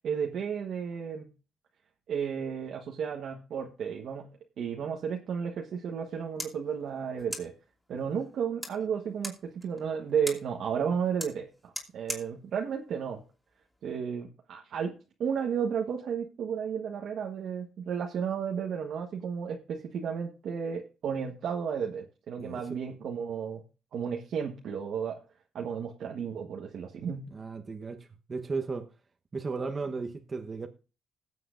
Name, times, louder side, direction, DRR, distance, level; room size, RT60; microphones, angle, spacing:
voice 1, 0.0-1.3 2.1-4.3 4.6-7.5 7.9-13.2 13.8-14.9 15.2-23.6 23.9-25.2 25.5-27.2, right 7 dB, 70° right, 1.3 m, -33 dB
sound 1, 6.0-14.0, equal, ahead, 2.8 m, -44 dB
voice 2, 22.4-22.7 27.3-28.9 29.3-30.7, right 4 dB, 35° right, 1.1 m, -35 dB
20.0 x 7.7 x 2.6 m
cardioid pair, 90°, 0 cm